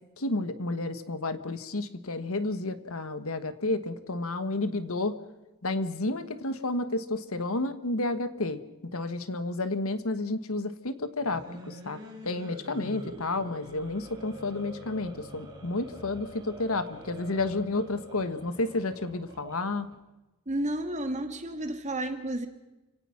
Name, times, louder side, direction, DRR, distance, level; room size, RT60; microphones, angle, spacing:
voice 1, 0.2-5.2 5.6-8.6 8.9-19.9, left 2 dB, 70° left, 12 dB, 1.5 m, -31 dB
sound 1, 11.2-19.9, equal, 20° right, 6.1 m, -46 dB
voice 2, 20.5-22.5, right 1 dB, 35° right, 6 dB, 2.4 m, -31 dB
29.0 x 17.5 x 5.9 m, 1.0 s
head